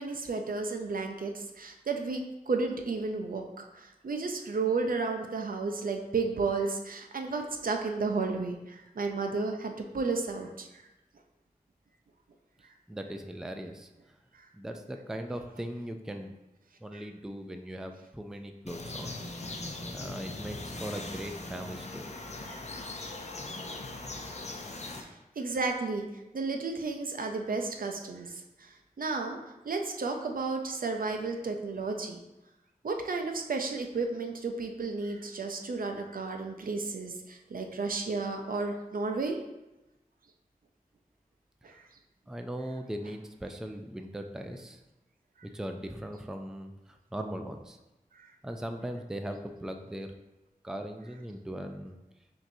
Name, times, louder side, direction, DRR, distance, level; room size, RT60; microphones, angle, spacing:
voice 1, 0.0-10.7 14.3-14.5 16.9-17.0 22.5-22.6 24.9-25.1 25.4-26.0 26.3-29.4 29.6-32.2 32.8-39.4 41.6-41.8 48.1-48.3, right 4 dB, 65° right, 3 dB, 0.5 m, -33 dB
voice 2, 12.9-14.1 14.5-16.3 16.8-19.1 19.9-22.1 42.3-44.8 45.5-47.8 48.4-50.1 50.6-52.0, right 1 dB, 5° right, 5 dB, 0.3 m, -39 dB
sound 1, 18.7-25.0, left 2 dB, 45° left, 0.6 m, -40 dB
5.7 x 2.7 x 2.7 m, 0.99 s
wide cardioid pair, 50°, 15 cm